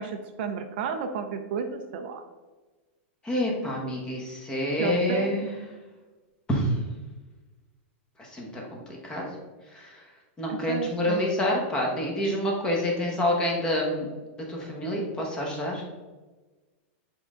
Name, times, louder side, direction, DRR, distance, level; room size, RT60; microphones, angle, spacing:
voice 1, 0.0-2.2 4.8-5.3 10.5-11.2, right 6 dB, 50° right, 6 dB, 0.6 m, -32 dB
voice 2, 3.2-5.5 6.5-6.8 8.2-9.3 9.7-10.0 10.4-14.1 14.5-15.8, left 1 dB, 10° left, -1 dB, 1.2 m, -27 dB
7.5 x 3.7 x 3.7 m, 1.2 s
supercardioid pair, 165°, 7 cm